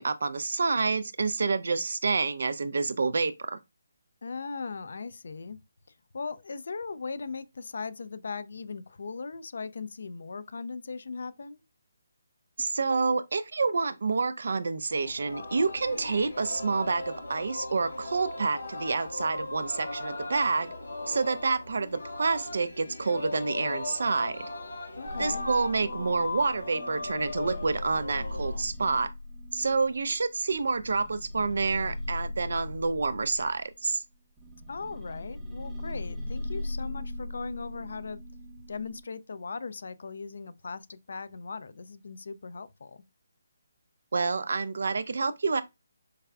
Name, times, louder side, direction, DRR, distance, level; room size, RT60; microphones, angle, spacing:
voice 1, 0.0-3.6 12.6-20.7 21.1-24.5 25.2-29.1 29.5-34.0 44.1-45.6, right 4 dB, 65° right, 0.3 m, -28 dB
voice 2, 4.2-5.6 6.1-11.6 24.9-25.5 34.7-38.2 38.7-43.0, left 4 dB, 65° left, 0.4 m, -38 dB
Singing, 14.9-28.6, left 2 dB, 80° left, 1.0 m, -38 dB
sound 1, 25.1-33.8 34.4-39.0, left 1 dB, 10° right, 0.7 m, -39 dB
4.7 x 2.3 x 2.2 m
figure-of-eight pair, 150°, 0 cm